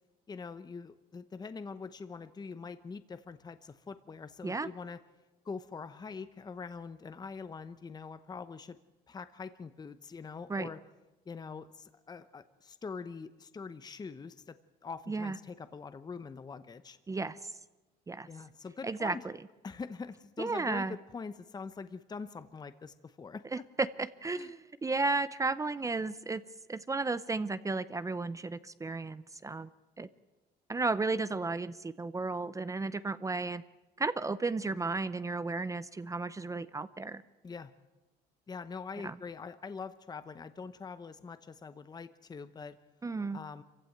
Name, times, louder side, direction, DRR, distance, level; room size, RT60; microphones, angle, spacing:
voice 1, 0.3-5.0 5.4-8.8 9.1-10.8 11.3-14.6 14.8-17.0 18.3-19.2 19.6-23.9 24.4-24.5 37.4-37.7 38.5-42.8 43.3-43.6, left 5 dB, 25° left, 12 dB, 0.9 m, -44 dB
voice 2, 15.1-15.4 17.1-17.5 18.1-18.3 18.8-19.4 20.4-21.0 23.5-26.4 26.7-29.7 30.0-30.1 30.7-33.6 34.0-37.2 39.0-39.1 43.0-43.4, right 3 dB, 20° right, 15 dB, 0.7 m, -33 dB
25.5 x 15.5 x 9.2 m, 1.1 s
cardioid pair, 110°, 17 cm